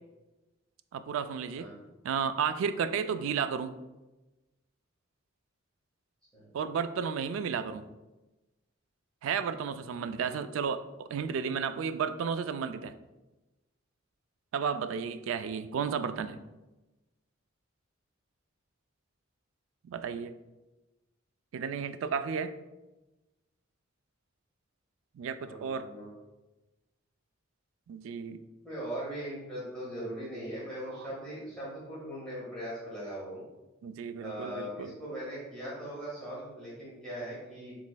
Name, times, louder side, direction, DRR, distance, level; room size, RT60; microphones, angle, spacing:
voice 1, 0.9-1.7 2.0-3.7 6.5-7.9 9.2-12.9 14.5-16.4 19.8-20.3 21.5-22.5 25.2-25.9 27.9-28.4 31.0-31.1 33.8-34.9, right 6 dB, 75° right, 12 dB, 0.3 m, -33 dB
voice 2, 25.4-26.1 28.6-33.4 34.2-37.8, equal, 5° left, -9 dB, 1.4 m, -40 dB
7.2 x 3.1 x 2.2 m, 1.1 s
head